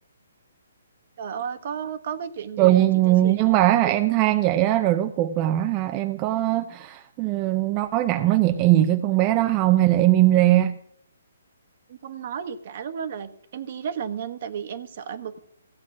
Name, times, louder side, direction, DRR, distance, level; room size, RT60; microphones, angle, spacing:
voice 1, 1.2-3.5 11.9-15.4, right 7 dB, 50° right, 10 dB, 1.1 m, -33 dB
voice 2, 2.6-10.8, right 14 dB, 25° right, 8 dB, 0.5 m, -20 dB
15.0 x 7.6 x 6.0 m, 0.69 s
hypercardioid pair, 155°, 0 cm